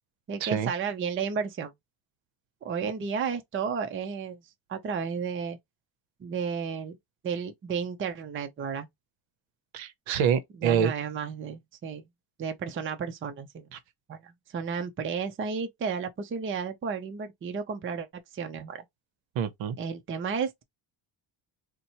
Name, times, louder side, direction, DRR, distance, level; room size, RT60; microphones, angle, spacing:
voice 1, 0.3-1.7 2.6-4.4 4.7-5.6 6.2-7.0 7.2-8.9 10.6-12.0 12.4-13.7 14.1-18.8 19.8-20.6, right 6 dB, 25° right, 0.5 m, -33 dB
voice 2, 9.7-10.9 13.7-13.8 19.4-19.8, right 8 dB, 70° right, 0.8 m, -26 dB
4.1 x 2.2 x 2.8 m
cardioid pair, 130°, 48 cm